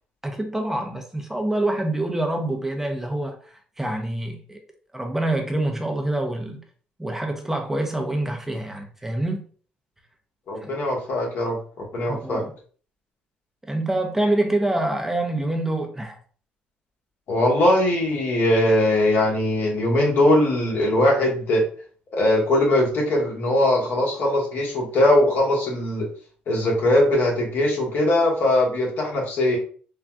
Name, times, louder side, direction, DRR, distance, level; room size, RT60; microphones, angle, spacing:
voice 1, 0.2-4.6 4.9-6.6 7.0-9.4 10.6-10.7 12.1-12.5 13.6-16.2, right 1 dB, 10° right, 3 dB, 0.6 m, -26 dB
voice 2, 10.5-12.4 17.3-21.6 22.1-26.1 26.5-29.6, left 1 dB, 60° left, -1 dB, 1.2 m, -20 dB
3.7 x 2.2 x 2.3 m, 0.43 s
supercardioid pair, 60°, 4 cm